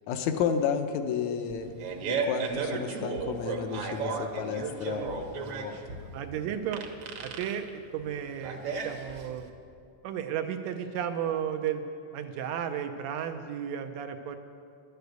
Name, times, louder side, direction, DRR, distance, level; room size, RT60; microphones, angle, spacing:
voice 1, 0.1-6.1, left 7 dB, 80° left, 6 dB, 2.0 m, -32 dB
Fart, 1.5-9.5, right 5 dB, 65° right, 1.7 m, -34 dB
voice 2, 6.1-6.8 7.2-9.5 10.0-11.9 12.1-14.4, right 9 dB, 80° right, 7 dB, 1.8 m, -34 dB
11.5 x 8.1 x 8.0 m, 2.3 s
omnidirectional pair, 3.3 m